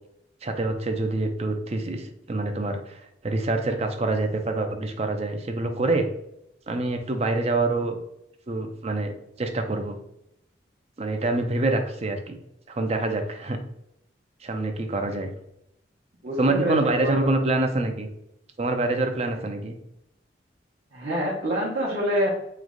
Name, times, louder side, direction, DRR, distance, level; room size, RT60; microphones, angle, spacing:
voice 1, 0.4-6.1 6.7-8.0 8.5-10.0 11.0-12.4 12.7-13.6 14.4-15.3 16.4-18.1 18.6-19.7, right 2 dB, 35° right, 6 dB, 0.5 m, -26 dB
voice 2, 16.2-17.3 20.9-22.3, equal, 60° right, -7 dB, 1.0 m, -26 dB
3.3 x 3.1 x 3.8 m, 0.79 s
head